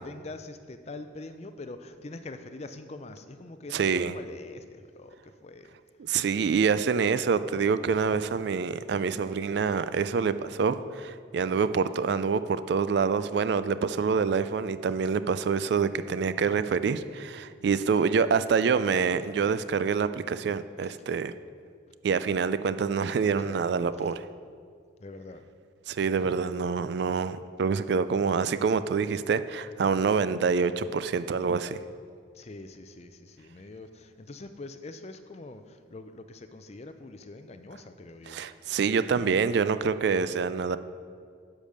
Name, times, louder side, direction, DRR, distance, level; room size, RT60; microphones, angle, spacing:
voice 1, 0.0-5.8 20.8-20.9 25.0-25.5 32.3-38.4 39.2-39.5, left 2 dB, 35° left, 9 dB, 0.4 m, -44 dB
voice 2, 3.7-4.1 6.1-21.3 22.0-24.2 25.9-31.8 38.3-40.8, right 5 dB, 55° right, 13 dB, 0.3 m, -26 dB
10.5 x 5.2 x 6.5 m, 2.2 s
head